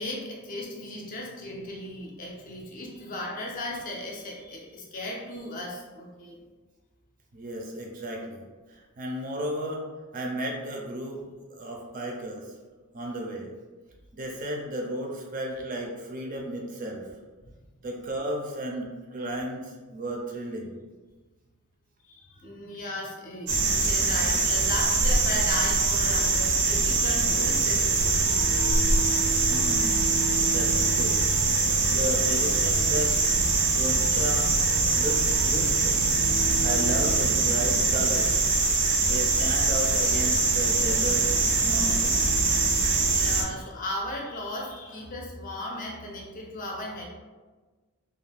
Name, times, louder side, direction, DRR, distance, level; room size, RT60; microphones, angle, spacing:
voice 1, 0.0-6.4 22.1-28.4 40.8-40.9 41.7-41.9 42.5-47.1, left 1 dB, 40° left, -1 dB, 0.5 m, -36 dB
voice 2, 7.3-8.4 8.7-9.8 10.1-11.2 11.5-12.5 12.9-13.5 14.1-17.1 17.8-20.7 29.5-30.0 30.5-31.2 31.9-34.5 35.0-36.0 36.6-38.5 39.0-41.3 41.6-42.2, right 1 dB, 35° right, 0 dB, 0.4 m, -34 dB
sound 1, 23.5-43.4, right 3 dB, 85° right, 0.6 m, -23 dB
sound 2, 25.1-37.2, right 2 dB, 85° left, 0.5 m, -36 dB
2.4 x 2.2 x 3.3 m, 1.3 s
head